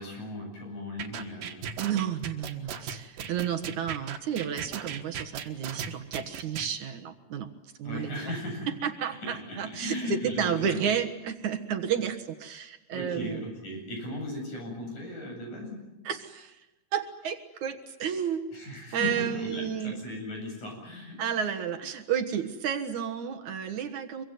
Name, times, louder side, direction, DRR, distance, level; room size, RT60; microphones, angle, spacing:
voice 1, 0.0-1.7 7.8-8.7 9.2-10.8 12.9-15.9 18.5-21.5, left 1 dB, 60° left, 1 dB, 9.5 m, -37 dB
sound 1, 1.0-6.7, right 8 dB, 80° right, 3.3 m, -37 dB
voice 2, 1.8-7.5 7.8-8.3 8.8-13.4 16.0-16.6 16.9-18.5 18.9-20.0 21.2-24.2, right 8 dB, 65° right, 6 dB, 2.7 m, -31 dB
25.0 x 24.0 x 9.5 m, 0.99 s
omnidirectional pair, 3.8 m